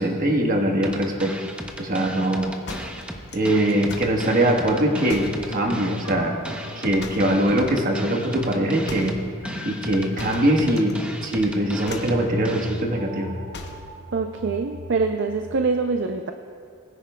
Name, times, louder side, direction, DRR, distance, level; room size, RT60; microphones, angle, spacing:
voice 1, 0.0-1.3 1.8-2.5 3.3-6.4 6.8-9.2 9.6-13.3, right 1 dB, 40° right, 2 dB, 1.2 m, -22 dB
sound 1, 0.8-12.8, equal, 5° right, 0.6 m, -35 dB
sound 2, 2.7-4.2 5.1-5.5 7.0-7.4 8.9-9.2 10.2-10.9 11.2-11.5 11.8-12.2 13.5-13.9, left 3 dB, 50° left, 0.8 m, -39 dB
sound 3, 5.2-15.5, left 2 dB, 85° left, 0.9 m, -42 dB
voice 2, 14.1-16.3, right 4 dB, 55° right, 6 dB, 0.4 m, -24 dB
20.5 x 9.7 x 2.2 m, 2.5 s
head